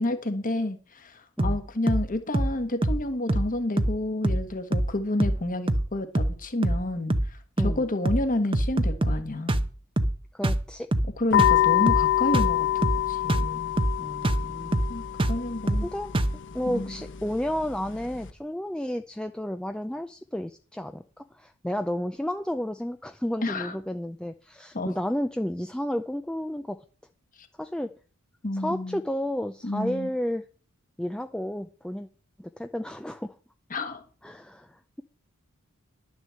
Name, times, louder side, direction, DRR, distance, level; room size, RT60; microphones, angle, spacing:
voice 1, 0.0-9.6 11.2-13.7 14.9-15.9 16.7-17.0 23.4-23.8 24.7-24.9 28.4-29.0 29.6-30.1 33.7-34.0, left 1 dB, 40° left, 1.4 m, -30 dB
sound 1, 1.4-1.6 1.9-2.1 2.3-2.6 2.8-3.0 3.3-3.5 3.8-4.5 4.7-4.9 5.2-5.4 5.7-5.9 6.1-6.4 6.6-6.8 7.1-7.3 7.6-7.8 8.0-8.3 8.5-9.2 9.5-9.7 10.0-10.2 10.4-10.6 10.9-11.1 11.4-11.6 11.9-12.1 12.3-12.6 12.8-13.0 13.3-13.5 13.8-14.0 14.2-14.5 14.7-14.9 15.2-15.4 15.7-15.9 16.1-16.4, right 1 dB, 25° right, 0.8 m, -24 dB
voice 2, 10.3-10.9 14.0-14.7 15.8-16.1 16.5-26.8 27.6-27.9 28.5-30.4 31.0-32.1 32.4-33.3 34.2-35.0, equal, 5° left, 0.4 m, -32 dB
sound 2, 11.3-18.3, left 13 dB, 60° left, 1.2 m, -27 dB
11.0 x 6.2 x 7.5 m
head